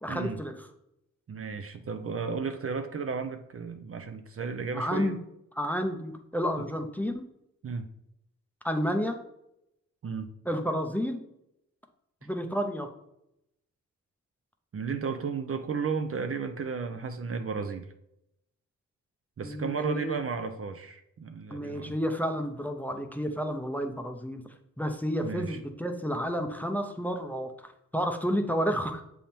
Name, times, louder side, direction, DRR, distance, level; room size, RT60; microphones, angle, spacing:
voice 1, 0.0-0.5 4.7-5.2 5.5-7.3 8.6-9.2 10.5-11.2 12.2-12.9 19.4-20.2 21.5-24.4 24.8-29.0, equal, 5° left, 5 dB, 0.7 m, -31 dB
voice 2, 1.3-5.1 6.6-6.7 7.6-7.9 10.0-10.3 14.7-17.9 19.4-21.9 25.2-25.6, right 5 dB, 45° right, 8 dB, 0.6 m, -34 dB
7.3 x 3.6 x 4.3 m, 0.79 s
wide cardioid pair, 105°, 31 cm